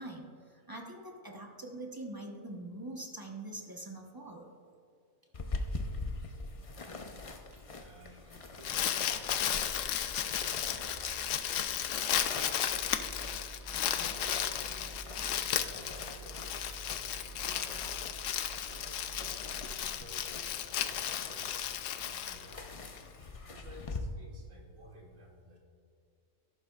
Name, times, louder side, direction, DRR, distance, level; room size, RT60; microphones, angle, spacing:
voice 1, 0.0-4.5 8.7-8.8, right 2 dB, 20° right, 1 dB, 1.0 m, -44 dB
sound 1, 5.3-24.0, left 3 dB, 35° left, 0.5 m, -44 dB
voice 2, 6.8-7.4 7.7-9.9 13.7-18.0 18.6-22.7 23.5-25.6, equal, 85° right, -1 dB, 2.1 m, -55 dB
Engine starting, 7.0-7.1 7.5-8.1 8.4-8.5 8.9-20.8, right 3 dB, 50° right, 1.1 m, -50 dB
Crumpling crinkling, 8.4-23.0, left 10 dB, 70° left, 0.9 m, -34 dB
13.5 x 11.5 x 2.4 m, 2.4 s
omnidirectional pair, 1.4 m